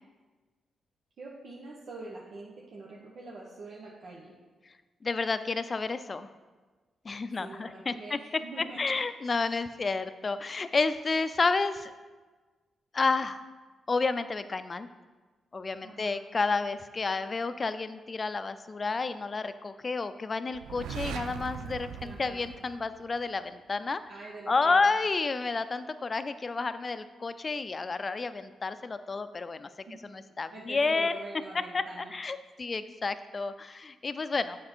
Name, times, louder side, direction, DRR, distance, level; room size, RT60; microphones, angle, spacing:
voice 1, 1.2-4.3 7.4-9.0 9.7-9.8 15.8-16.2 22.0-22.5 24.1-24.9 29.9-30.2 30.5-32.1, right 2 dB, 65° right, -4 dB, 1.0 m, -44 dB
voice 2, 5.0-6.3 7.0-8.2 8.8-11.9 12.9-13.4 13.9-14.9 15.5-24.0 24.5-29.7 30.0-31.2 31.7-31.8 32.1-34.6, left 4 dB, 40° left, 12 dB, 0.5 m, -30 dB
sound 1, 20.5-23.4, right 7 dB, 85° right, 0.3 m, -40 dB
7.6 x 5.3 x 4.4 m, 1.3 s
supercardioid pair, 50°, 0 cm